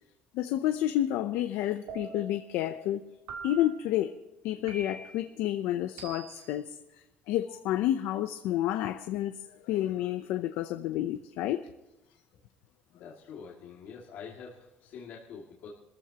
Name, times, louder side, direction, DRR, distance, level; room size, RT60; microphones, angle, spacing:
voice 1, 0.3-3.0 3.4-4.2 4.4-6.8 7.3-9.4 9.6-11.7, left 13 dB, 85° left, 0.7 m, -30 dB
sound 1, 1.9-2.5 3.3-3.9 4.7-5.3 6.0-6.6, right 5 dB, 75° right, 2.7 m, -43 dB
voice 2, 12.9-15.7, left 6 dB, 60° left, 2.4 m, -46 dB
26.5 x 14.5 x 3.0 m
cardioid pair, 160°, 4 cm